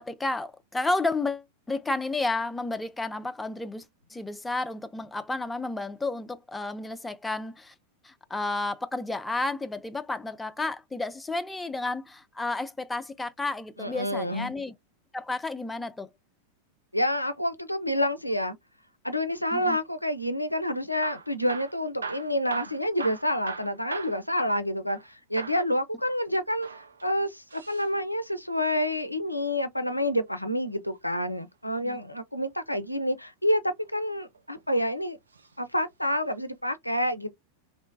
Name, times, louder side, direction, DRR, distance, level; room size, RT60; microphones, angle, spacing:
voice 1, 0.0-3.8 4.1-7.7 8.0-14.7 15.1-16.1 19.5-19.8 31.8-32.0, left 2 dB, 10° left, 0.3 m, -31 dB
voice 2, 13.8-14.5 16.9-18.6 19.0-35.2 35.6-37.3, equal, 90° left, 0.3 m, -28 dB
Hammer / Drill, 20.9-25.1 25.4-25.7 26.5-27.9 29.7-30.9 32.6-33.1 33.8-34.6 35.3-35.6 35.9-36.0 36.6-36.7, right 4 dB, 75° right, 0.4 m, -40 dB
2.8 x 2.1 x 2.5 m
figure-of-eight pair, 90°, 0 cm